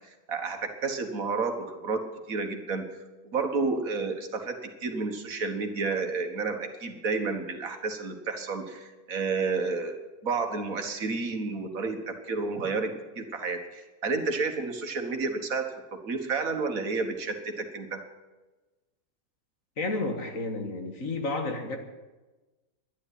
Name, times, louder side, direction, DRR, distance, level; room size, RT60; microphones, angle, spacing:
voice 1, 0.3-2.0 2.3-2.9 3.2-10.0 10.2-18.0, right 4 dB, 65° right, 5 dB, 1.9 m, -31 dB
voice 2, 19.8-21.8, left 2 dB, 60° left, 5 dB, 2.0 m, -31 dB
11.0 x 11.0 x 10.0 m, 1.2 s
omnidirectional pair, 1.6 m